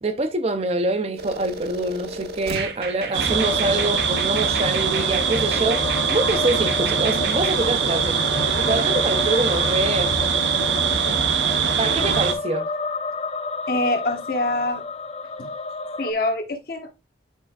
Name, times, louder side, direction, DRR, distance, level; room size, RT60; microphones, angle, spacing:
voice 1, 0.0-8.2 8.5-10.2 11.7-12.7, right 2 dB, 35° right, 0.6 m, -25 dB
sound 1, 1.2-7.6, right 4 dB, 55° right, 0.9 m, -34 dB
sound 2, 3.1-12.3, right 6 dB, 80° right, 0.9 m, -22 dB
sound 3, 3.3-16.1, left 3 dB, 35° left, 0.5 m, -31 dB
voice 2, 13.7-14.8 15.4-15.5 16.0-17.0, left 2 dB, 55° left, 1.2 m, -25 dB
10.0 x 4.4 x 2.3 m
head